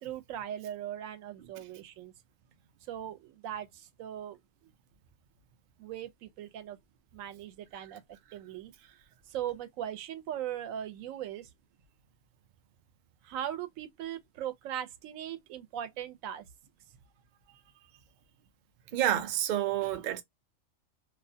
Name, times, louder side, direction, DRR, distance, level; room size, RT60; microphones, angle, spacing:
voice 1, 0.0-2.1 2.9-4.4 4.6-4.7 5.8-6.8 7.1-8.0 8.3-8.9 9.3-11.5 13.2-16.5, right 10 dB, 85° right, 1.0 m, -39 dB
voice 2, 18.9-20.2, right 11 dB, 65° right, 0.5 m, -29 dB
2.4 x 2.1 x 2.6 m
omnidirectional pair, 1.3 m